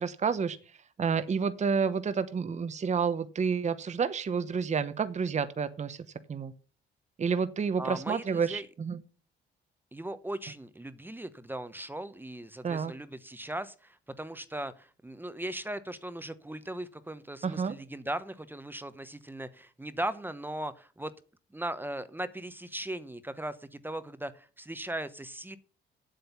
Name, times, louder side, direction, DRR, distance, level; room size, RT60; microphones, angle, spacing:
voice 1, 0.0-6.5 7.2-9.0 12.6-12.9 17.4-17.7, right 6 dB, 35° right, 11 dB, 0.9 m, -30 dB
voice 2, 7.8-8.7 9.9-21.1 21.5-25.6, right 1 dB, 10° right, 13 dB, 0.9 m, -38 dB
8.1 x 7.7 x 7.0 m, 0.37 s
cardioid pair, 90°, 20 cm